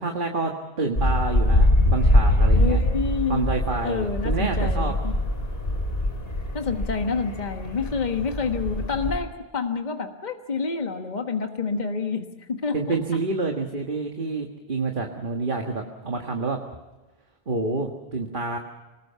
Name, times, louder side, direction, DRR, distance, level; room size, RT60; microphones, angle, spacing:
voice 1, 0.0-2.8 3.3-4.9 12.7-16.6 17.5-18.6, right 3 dB, 50° right, 2 dB, 1.9 m, -28 dB
sound 1, 0.9-9.2, left 1 dB, 60° left, 5.4 m, -23 dB
voice 2, 2.5-3.4 3.8-5.1 6.5-13.0, left 5 dB, 45° left, 5 dB, 1.5 m, -28 dB
26.5 x 20.0 x 6.9 m, 1.2 s
omnidirectional pair, 1.1 m